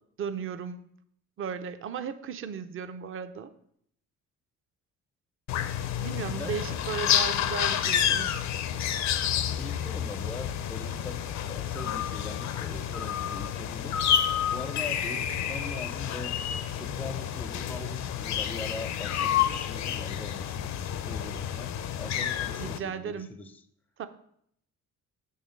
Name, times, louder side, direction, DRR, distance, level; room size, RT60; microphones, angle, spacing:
voice 1, 0.2-0.8 1.4-3.5 6.0-8.5 22.6-23.4 24.0-24.1, right 7 dB, 45° right, 10 dB, 0.6 m, -35 dB
sound 1, 5.5-22.8, left 9 dB, 65° left, 0.5 m, -29 dB
voice 2, 6.3-7.1 9.3-14.0 14.5-16.4 16.7-23.6, left 3 dB, 5° left, 10 dB, 0.4 m, -41 dB
6.4 x 3.2 x 5.8 m, 0.68 s
cardioid pair, 90°, 30 cm